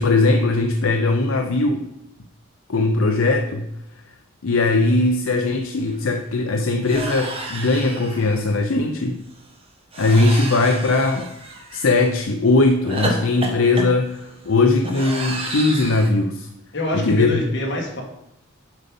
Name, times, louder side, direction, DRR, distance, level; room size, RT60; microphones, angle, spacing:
voice 1, 0.0-1.8 2.7-3.7 4.4-9.2 10.0-11.3 11.7-16.5 16.9-17.4, left 2 dB, 75° left, 4 dB, 0.6 m, -19 dB
sound 1, 5.4-5.5 5.8-6.0 6.8-8.5 9.9-12.1 12.8-16.1, right 1 dB, 30° right, 1.3 m, -31 dB
voice 2, 16.7-18.0, left 1 dB, 55° left, -1 dB, 1.9 m, -25 dB
8.1 x 5.2 x 5.3 m, 0.82 s
head